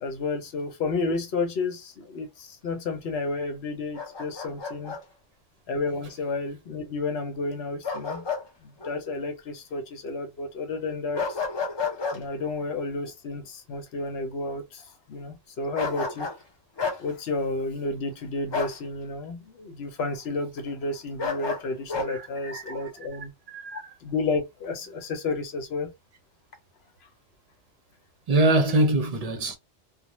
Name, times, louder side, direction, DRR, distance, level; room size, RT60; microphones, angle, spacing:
voice 1, 0.0-5.0 5.7-8.3 8.6-11.4 12.1-16.3 17.0-23.3 23.7-25.9, left 3 dB, 70° left, 0.9 m, -31 dB
Bark, 4.0-5.0 7.8-8.5 8.8-9.0 11.1-12.2 15.8-16.4 16.8-17.0 18.5-18.8 21.2-22.1, left 5 dB, 45° left, 0.3 m, -30 dB
voice 2, 22.1-23.8 28.3-29.6, right 2 dB, 45° right, 0.5 m, -25 dB
2.4 x 2.1 x 3.0 m
omnidirectional pair, 1.2 m